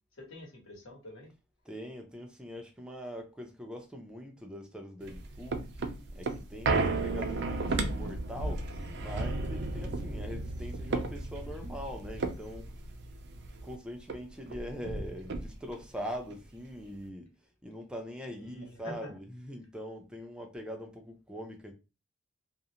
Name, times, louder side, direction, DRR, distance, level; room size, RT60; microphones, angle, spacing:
voice 1, 0.1-1.3 18.3-19.1, left 1 dB, 70° left, 1.2 m, -46 dB
voice 2, 1.6-5.6 6.1-8.7 9.0-12.7 13.6-17.3 17.6-21.7, equal, 5° right, 0.4 m, -42 dB
sound 1, 5.0-13.7 14.1-14.2 14.5-15.8 16.3-16.4, right 3 dB, 55° right, 0.4 m, -34 dB
2.5 x 2.0 x 2.8 m
head